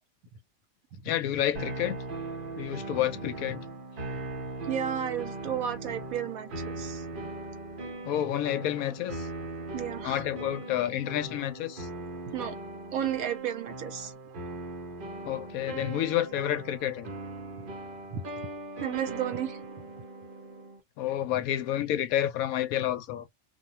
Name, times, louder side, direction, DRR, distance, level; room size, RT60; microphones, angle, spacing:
voice 1, 1.0-2.0 2.6-3.6 8.0-9.3 10.0-11.9 15.2-17.1 21.0-23.3, left 11 dB, 75° left, 1.0 m, -29 dB
sound 1, 1.5-20.8, right 2 dB, 45° right, 0.8 m, -39 dB
voice 2, 4.7-7.3 9.7-10.2 12.3-12.5 12.9-14.1 18.1-18.2 18.8-19.6, right 9 dB, 75° right, 1.1 m, -33 dB
2.6 x 2.2 x 2.8 m
omnidirectional pair, 1.6 m